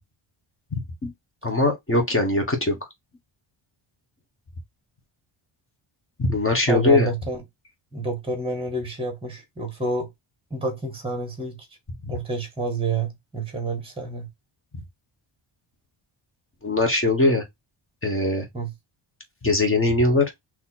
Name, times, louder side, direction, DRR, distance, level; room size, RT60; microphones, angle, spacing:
voice 1, 0.7-1.1 1.4-2.8 6.2-7.1 12.0-12.1 16.6-17.4 18.0-18.5 19.4-20.3, left 2 dB, 25° left, 1.2 m, -21 dB
voice 2, 6.7-7.4 7.9-10.1 10.5-11.7 12.1-14.3 18.5-18.7, right 3 dB, 10° right, 1.7 m, -28 dB
3.9 x 3.0 x 4.2 m
wide cardioid pair, 155°, 50 cm